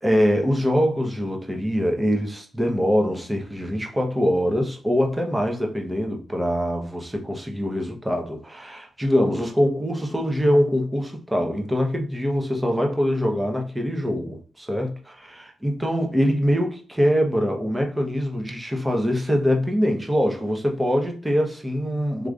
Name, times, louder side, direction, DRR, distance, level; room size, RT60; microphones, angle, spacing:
voice 1, 0.0-15.0 15.3-22.3, equal, 15° right, 1.0 m, -23 dB
3.7 x 3.0 x 2.5 m
cardioid pair, 75°, 0 cm